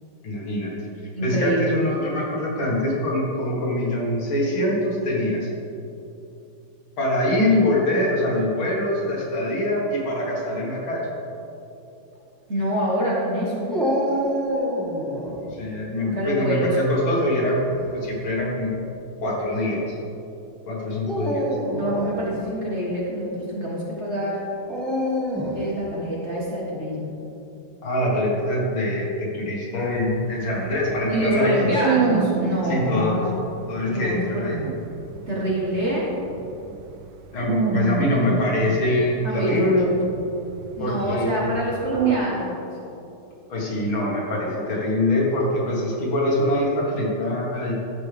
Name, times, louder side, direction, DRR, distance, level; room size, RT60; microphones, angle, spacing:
voice 1, 0.2-0.7 1.2-5.5 7.0-11.1 15.5-17.6 17.9-18.7 19.2-20.0 20.7-21.6 27.8-31.8 32.7-33.3 33.7-34.8 37.3-39.9 40.8-41.6 43.5-47.7, left 1 dB, 75° left, -4 dB, 2.5 m, -24 dB
voice 2, 1.1-1.8 12.5-13.8 16.0-16.8 21.7-24.4 25.5-27.2 31.1-33.4 33.9-34.5 35.3-36.1 39.2-39.7 40.8-42.7, equal, 40° right, -5 dB, 1.3 m, -26 dB
Dog, 13.7-15.4 17.4-17.9 18.7-18.8 21.0-22.2 24.7-25.7, equal, ahead, 0.8 m, -26 dB
sound 1, 29.8-33.1 33.5-33.7 34.1-34.2 34.5-37.1 37.4-39.3 39.5-42.2, right 7 dB, 75° right, 1.1 m, -27 dB
12.5 x 6.4 x 3.4 m, 2.8 s
omnidirectional pair, 2.3 m